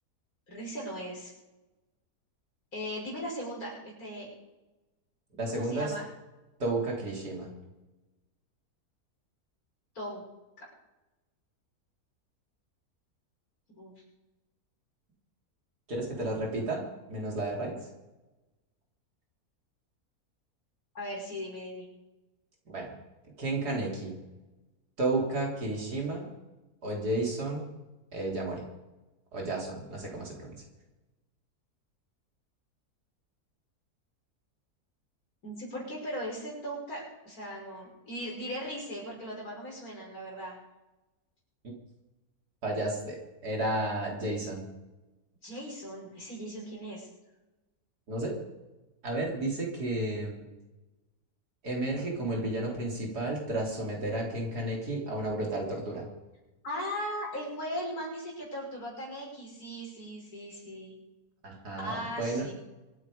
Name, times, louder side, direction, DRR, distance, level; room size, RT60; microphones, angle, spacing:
voice 1, 0.5-1.3 2.7-4.3 5.5-6.0 9.9-10.2 10.6-10.7 13.7-13.9 20.9-21.9 35.4-40.6 45.4-47.1 56.6-60.9 61.8-62.5, equal, 65° left, -3 dB, 6.5 m, -38 dB
voice 2, 5.4-5.9 6.6-7.5 15.9-16.8 17.1-17.8 22.7-22.9 23.4-24.2 25.0-26.3 26.8-27.7 28.1-28.7 29.3-30.6 42.6-44.7 48.1-48.4 49.0-50.4 51.6-56.1 61.4-62.5, right 2 dB, 85° right, -1 dB, 4.1 m, -32 dB
25.0 x 9.5 x 5.1 m, 1.1 s
omnidirectional pair, 1.6 m